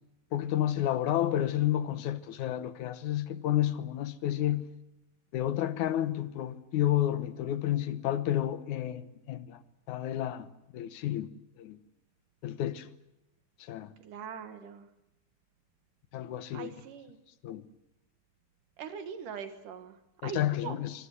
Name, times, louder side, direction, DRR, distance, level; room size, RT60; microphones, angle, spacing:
voice 1, 0.3-4.7 5.3-9.6 9.9-10.5 10.7-11.3 11.6-11.8 12.4-12.9 13.6-13.9 16.1-16.7 17.4-17.7 20.2-20.9, left 12 dB, 65° left, 2.3 m, -30 dB
voice 2, 14.0-14.9 16.5-17.2 18.8-20.8, right 7 dB, 70° right, 3.0 m, -42 dB
25.0 x 16.0 x 9.6 m
omnidirectional pair, 4.0 m